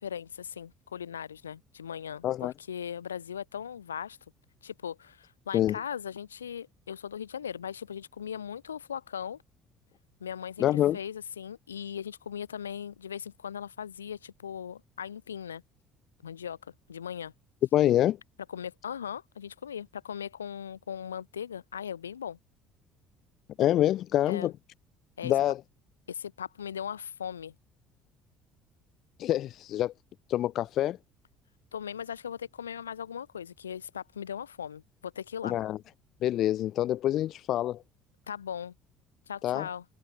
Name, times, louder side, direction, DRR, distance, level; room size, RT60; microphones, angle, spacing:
voice 1, 0.0-4.2 4.6-9.4 10.2-15.6 16.2-17.3 18.5-22.4 24.3-24.5 25.2-25.3 26.1-27.5 31.7-35.5 38.3-38.7 39.3-39.8, left 8 dB, 80° left, 2.8 m, -39 dB
voice 2, 10.6-11.0 17.7-18.2 23.6-24.5 25.2-25.6 29.2-29.9 30.3-31.0 35.4-35.8 36.2-37.8 39.4-39.7, left 13 dB, 50° left, 0.9 m, -26 dB
figure-of-eight pair, 55°, 0 cm